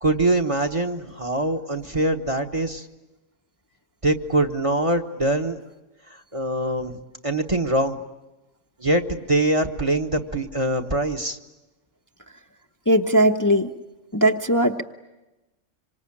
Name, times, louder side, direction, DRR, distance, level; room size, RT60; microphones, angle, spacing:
voice 1, 0.0-2.8 4.0-5.6 6.3-8.0 8.8-11.4, right 1 dB, 25° right, 6 dB, 1.3 m, -23 dB
voice 2, 12.9-13.7 14.1-14.8, equal, 15° left, 3 dB, 0.9 m, -19 dB
26.5 x 25.0 x 8.8 m, 1.0 s
omnidirectional pair, 1.3 m